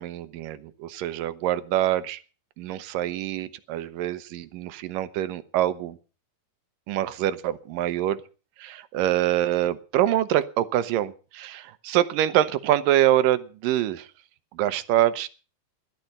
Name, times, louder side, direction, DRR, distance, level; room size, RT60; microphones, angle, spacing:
voice 1, 0.0-2.2 2.6-6.0 6.9-8.2 8.6-14.1 14.5-15.3, right 12 dB, 75° right, 12 dB, 2.4 m, -25 dB
16.5 x 12.0 x 5.4 m, 0.36 s
omnidirectional pair, 4.3 m